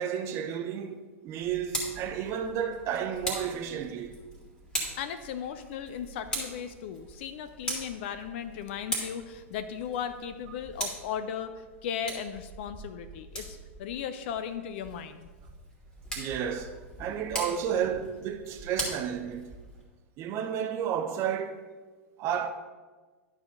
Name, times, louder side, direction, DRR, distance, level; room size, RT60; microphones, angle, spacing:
voice 1, 0.0-4.2 16.2-19.6 20.2-21.7 22.2-22.5, right 8 dB, 35° right, 0.9 m, -32 dB
Tick, 1.4-19.8, right 1 dB, 10° left, 3.0 m, -40 dB
voice 2, 5.0-11.5 11.8-15.3, left 8 dB, 50° left, 0.6 m, -36 dB
11.5 x 4.8 x 5.3 m
figure-of-eight pair, 95°, 8 cm